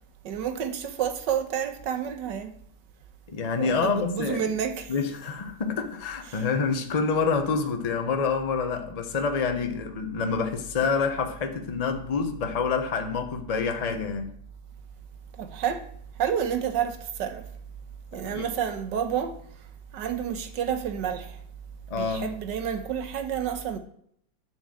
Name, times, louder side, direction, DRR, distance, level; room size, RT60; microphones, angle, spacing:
voice 1, 0.2-2.5 3.6-4.9 6.3-6.4 15.4-15.9 16.2-17.4 18.1-19.3 19.9-21.4 21.9-23.8, right 8 dB, 90° right, 1.6 m, -29 dB
voice 2, 3.3-4.6 4.9-14.4 18.1-18.5 21.9-22.3, left 5 dB, 30° left, 0.8 m, -27 dB
10.5 x 4.5 x 7.7 m
omnidirectional pair, 1.8 m